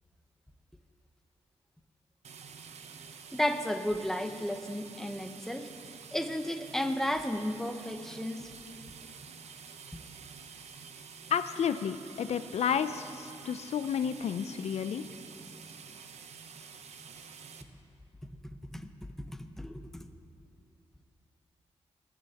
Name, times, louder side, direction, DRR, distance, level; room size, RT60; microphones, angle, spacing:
sound 1, 2.2-17.6, right 6 dB, 75° right, 0.8 m, -49 dB
voice 1, 3.3-5.7 6.1-8.5 18.7-19.8, left 1 dB, 5° left, 6 dB, 0.9 m, -33 dB
voice 2, 11.3-15.0, left 8 dB, 70° left, 11 dB, 0.5 m, -31 dB
21.5 x 13.5 x 2.9 m, 2.6 s
cardioid pair, 80°, 11 cm